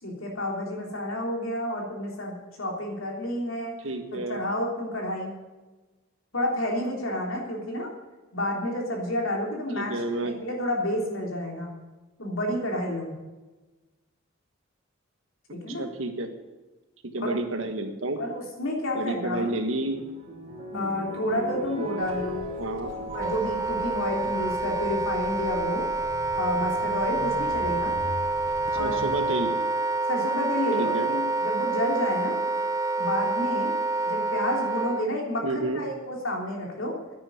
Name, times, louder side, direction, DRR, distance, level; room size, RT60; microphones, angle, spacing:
voice 1, 0.0-3.7 4.1-5.3 6.3-7.9 8.3-11.7 12.2-13.1 15.5-15.9 17.2-17.4 18.2-19.5 20.7-22.4 23.0-25.9 26.4-27.9 28.7-29.0 30.1-32.4 33.0-33.7 34.0-37.0, left 1 dB, 75° left, -1 dB, 3.5 m, -30 dB
voice 2, 3.8-4.4 9.7-10.3 15.8-16.3 17.1-18.2 18.9-20.0 22.6-22.9 28.8-29.5 30.8-31.1 35.4-35.8, right 2 dB, 70° right, 6 dB, 1.5 m, -30 dB
sound 1, 19.4-25.0 25.7-26.2 27.4-27.5 28.2-28.5 30.7-31.3 32.0-32.1 32.3-32.4, equal, 30° right, 3.3 m, -39 dB
sound 2, 22.0-29.4, equal, 50° right, 3.3 m, -42 dB
Wind instrument woodwind instrument, 23.1-35.1, right 2 dB, 15° right, 0.3 m, -28 dB
10.0 x 9.7 x 8.9 m, 1.2 s
head